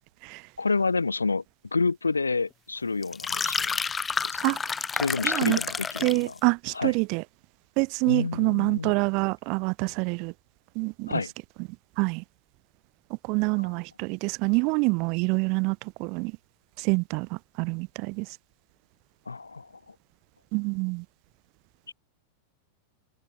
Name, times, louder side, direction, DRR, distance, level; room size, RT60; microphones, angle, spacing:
voice 1, 0.6-1.4 1.7-3.8 4.2-4.4 4.9-6.4 6.7-6.9 8.1-8.9 11.1-11.3 13.6-13.7 19.3-19.9 21.9-22.0, left 4 dB, 80° left, 0.7 m, -29 dB
sound 1, 3.0-6.3, left 5 dB, 15° left, 1.5 m, -29 dB
voice 2, 4.4-4.7 5.2-5.6 6.0-7.2 7.8-10.3 10.7-11.1 12.0-12.2 13.2-16.3 16.8-18.3 20.5-21.0, right 31 dB, 45° right, 1.2 m, -26 dB
open air
figure-of-eight pair, 90°, 0 cm